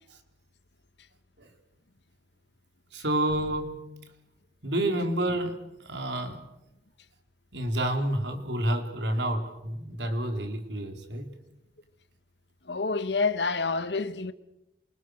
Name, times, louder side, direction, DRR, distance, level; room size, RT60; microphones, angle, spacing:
voice 1, 2.9-3.8 4.6-6.4 7.5-11.3, right 1 dB, 85° right, 4.2 m, -29 dB
voice 2, 12.6-14.3, left 4 dB, 75° left, 1.5 m, -28 dB
28.0 x 26.0 x 6.6 m
head